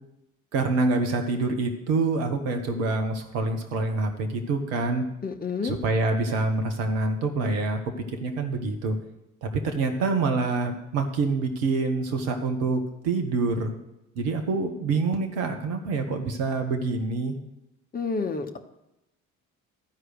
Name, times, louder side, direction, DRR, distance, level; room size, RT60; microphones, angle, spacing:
voice 1, 0.5-5.0 5.6-9.0 9.4-13.7 14.1-17.4, right 3 dB, 65° right, 5 dB, 1.3 m, -26 dB
voice 2, 5.2-5.8 17.9-18.6, left 4 dB, 20° left, 5 dB, 1.0 m, -29 dB
12.5 x 4.8 x 8.0 m, 0.88 s
figure-of-eight pair, 50°, 43 cm